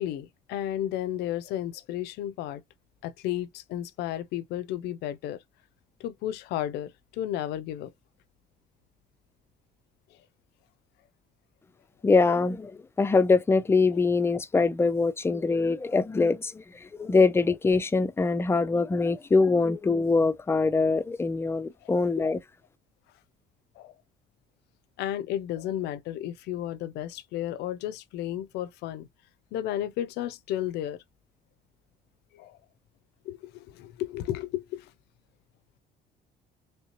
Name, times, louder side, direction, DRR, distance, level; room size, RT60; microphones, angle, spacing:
voice 1, 0.0-2.6 3.0-5.4 6.0-7.9 21.8-22.3 23.8-23.9 25.0-29.1 29.5-31.0 32.3-32.6 33.2-34.9, left 12 dB, 80° left, 0.5 m, -33 dB
voice 2, 12.0-12.7 13.0-16.6 17.0-22.4, left 4 dB, 15° left, 0.4 m, -23 dB
3.2 x 2.8 x 2.9 m
cardioid pair, 110°, 17 cm